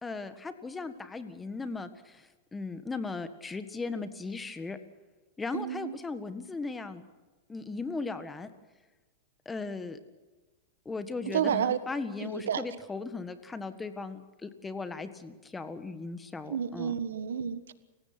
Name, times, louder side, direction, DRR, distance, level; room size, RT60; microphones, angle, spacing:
voice 1, 0.0-4.8 5.4-7.0 7.5-8.5 9.4-10.0 10.8-16.9, left 4 dB, 10° left, 10 dB, 1.6 m, -37 dB
voice 2, 5.5-5.9 11.3-11.8 12.2-12.6 16.5-17.7, right 8 dB, 90° right, 13 dB, 1.4 m, -30 dB
29.0 x 16.5 x 6.1 m, 1.2 s
hypercardioid pair, 135°, 0 cm